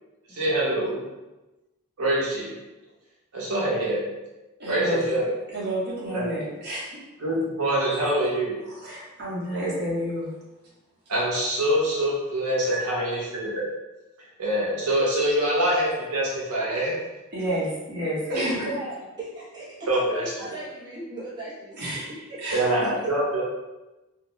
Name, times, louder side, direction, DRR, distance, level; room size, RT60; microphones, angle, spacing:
voice 1, 0.3-1.0 2.0-2.5 3.3-4.0 4.7-5.3 6.1-6.2 7.2-8.6 11.1-13.7 14.4-16.9 18.4-18.5 19.9-20.2 22.5-23.4, right 1 dB, 75° right, -5 dB, 0.8 m, -25 dB
voice 2, 4.6-5.1 5.5-7.0 7.9-8.0 8.7-10.3 12.7-12.8 17.3-18.8 21.8-22.1 22.4-22.9, equal, 50° right, -7 dB, 0.9 m, -30 dB
voice 3, 18.7-22.7, right 1 dB, 20° right, -9 dB, 0.7 m, -38 dB
2.5 x 2.1 x 3.0 m, 1.1 s
head